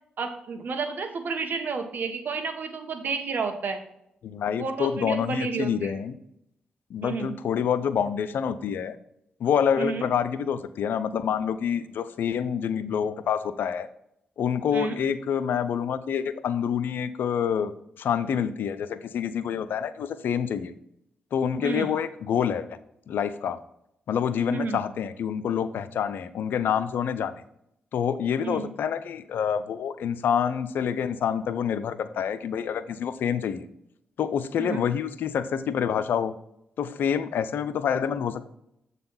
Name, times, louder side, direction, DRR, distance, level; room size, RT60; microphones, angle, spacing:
voice 1, 0.2-3.8 4.6-6.0 7.0-7.3 9.8-10.1 14.7-15.0 21.6-21.9 24.5-24.8 28.4-28.7 34.6-34.8, right 5 dB, 65° right, 7 dB, 1.3 m, -31 dB
voice 2, 4.2-6.1 6.9-9.0 9.4-13.9 14.4-17.7 18.0-20.7 21.3-22.8 23.1-23.6 24.1-27.3 27.9-33.7 34.2-36.3 36.8-38.4, left 8 dB, 80° left, 13 dB, 0.6 m, -27 dB
7.7 x 4.1 x 5.6 m, 0.76 s
supercardioid pair, 55°, 3 cm